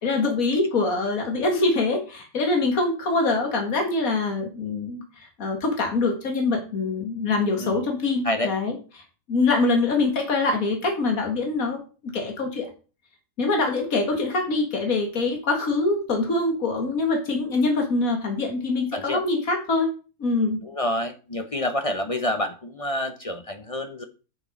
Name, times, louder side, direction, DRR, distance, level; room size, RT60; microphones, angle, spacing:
voice 1, 0.0-8.8 9.3-12.7 13.4-19.9 20.2-20.6, left 3 dB, 70° left, 3 dB, 2.3 m, -24 dB
voice 2, 20.6-24.0, left 1 dB, 30° left, 7 dB, 0.7 m, -28 dB
7.3 x 6.4 x 5.2 m, 0.35 s
omnidirectional pair, 1.5 m